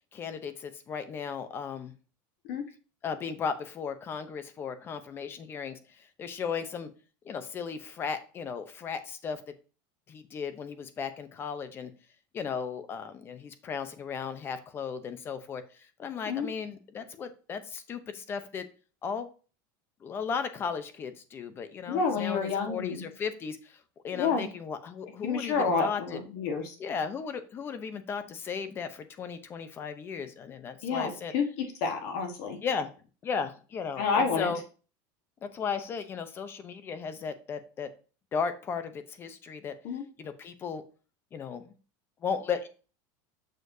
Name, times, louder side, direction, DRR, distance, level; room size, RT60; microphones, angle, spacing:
voice 1, 0.1-1.9 3.0-6.9 7.2-9.4 10.1-11.9 12.3-18.7 19.0-19.3 20.0-26.2 26.8-31.3 32.6-32.9 33.2-34.6 35.4-37.9 38.3-39.7 40.2-40.8 41.3-41.7 42.2-42.7, left 6 dB, 25° left, 11 dB, 0.6 m, -36 dB
voice 2, 21.9-23.0 24.1-24.5 25.2-26.7 30.8-32.6 34.0-34.5 39.8-40.0, left 5 dB, 60° left, 4 dB, 1.4 m, -29 dB
6.5 x 6.3 x 2.7 m, 0.36 s
supercardioid pair, 165°, 10 cm